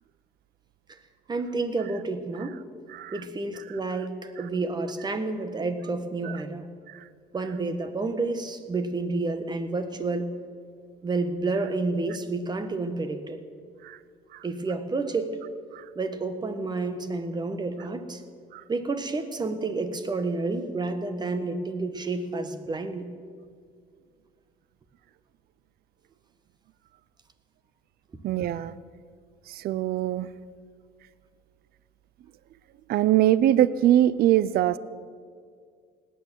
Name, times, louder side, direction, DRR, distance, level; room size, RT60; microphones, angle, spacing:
voice 1, 1.3-2.6 3.1-6.7 7.3-10.3 11.0-13.4 14.4-15.4 15.9-18.2 18.7-23.1, right 3 dB, 25° right, 9 dB, 1.4 m, -30 dB
voice 2, 28.2-28.7 29.5-30.3 32.9-34.8, right 12 dB, 65° right, 18 dB, 0.5 m, -23 dB
18.0 x 9.4 x 7.5 m, 2.1 s
cardioid pair, 110°, 17 cm